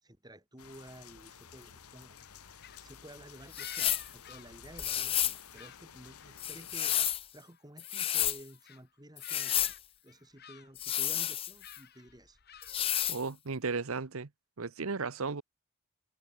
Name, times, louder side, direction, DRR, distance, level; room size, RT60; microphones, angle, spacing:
voice 1, 0.0-2.5 2.8-7.0 7.3-9.7 10.0-12.4, right 1 dB, 15° right, 3.6 m, -52 dB
sound 1, 0.6-7.1, left 7 dB, 85° left, 1.3 m, -53 dB
sound 2, 2.2-5.2 5.5-7.2 7.4-8.1 8.5-8.8 9.2-9.8 10.1-11.0 11.6-13.1, left 9 dB, 45° left, 4.2 m, -53 dB
sound 3, 3.5-4.1 4.8-5.4 6.4-7.2 7.8-8.4 9.2-9.8 10.8-11.8 12.6-13.2, left 11 dB, 25° left, 0.6 m, -31 dB
voice 2, 13.1-14.3 14.6-15.4, right 4 dB, 70° right, 0.9 m, -35 dB
head